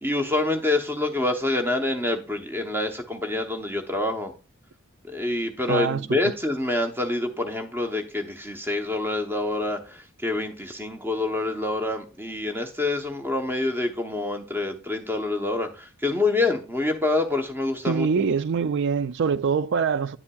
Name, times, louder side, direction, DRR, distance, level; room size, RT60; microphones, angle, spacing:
voice 1, 0.0-4.3 5.1-18.1, left 2 dB, 10° right, 0.8 m, -26 dB
voice 2, 5.7-6.2 17.9-20.2, right 6 dB, 55° right, 0.4 m, -24 dB
9.8 x 7.1 x 2.3 m
head